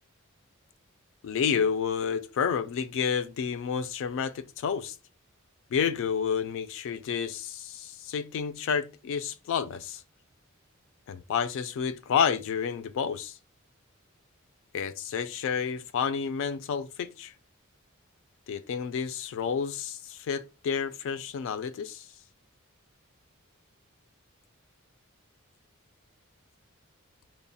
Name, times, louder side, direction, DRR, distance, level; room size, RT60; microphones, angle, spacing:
voice 1, 1.2-4.9 5.7-10.0 11.1-13.4 14.7-17.3 18.5-22.0, left 7 dB, 65° left, 0.3 m, -30 dB
2.9 x 2.0 x 2.6 m
head